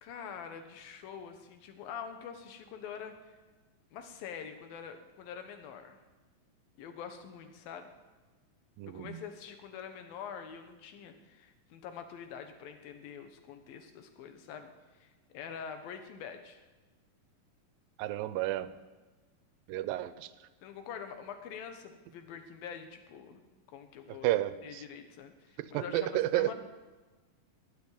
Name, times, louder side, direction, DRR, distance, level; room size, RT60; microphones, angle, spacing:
voice 1, 0.0-3.4 3.9-6.0 6.8-7.9 8.8-14.7 15.0-16.6 20.6-24.3 24.6-26.5, left 7 dB, 90° left, 7 dB, 3.1 m, -45 dB
voice 2, 8.8-9.2 18.0-18.7 19.7-20.3 24.1-24.8 25.6-26.5, right 15 dB, 85° right, 14 dB, 2.4 m, -31 dB
21.0 x 7.8 x 8.8 m, 1.3 s
omnidirectional pair, 4.0 m